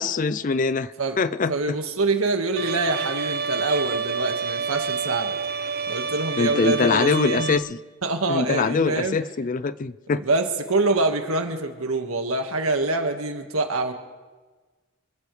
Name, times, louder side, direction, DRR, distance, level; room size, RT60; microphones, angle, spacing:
voice 1, 0.0-1.8 6.4-7.7 8.3-10.2, left 4 dB, 40° left, 16 dB, 0.4 m, -23 dB
voice 2, 1.5-5.4 5.9-7.6 8.0-9.1 10.1-13.9, right 2 dB, 80° right, 5 dB, 1.7 m, -25 dB
Bowed string instrument, 2.6-7.6, right 5 dB, 45° right, 0.7 m, -28 dB
27.0 x 15.0 x 3.3 m, 1.3 s
head